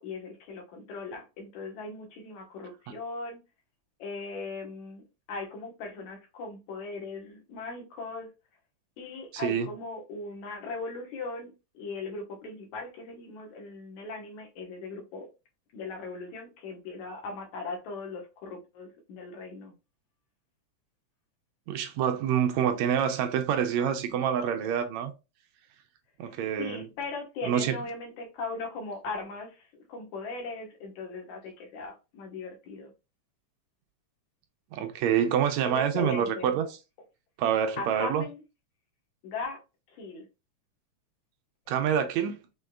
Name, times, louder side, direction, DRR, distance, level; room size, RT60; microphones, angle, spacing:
voice 1, 0.0-3.4 4.0-8.3 9.0-15.3 15.7-19.7 26.2-32.9 35.6-36.6 37.8-38.4 39.2-39.6 39.9-40.3, left 3 dB, 80° left, 2.7 m, -39 dB
voice 2, 21.7-25.1 26.2-26.9 27.4-27.8 34.7-36.7 37.4-38.3 41.7-42.4, right 8 dB, 80° right, 1.9 m, -27 dB
6.2 x 3.5 x 2.3 m
omnidirectional pair, 3.3 m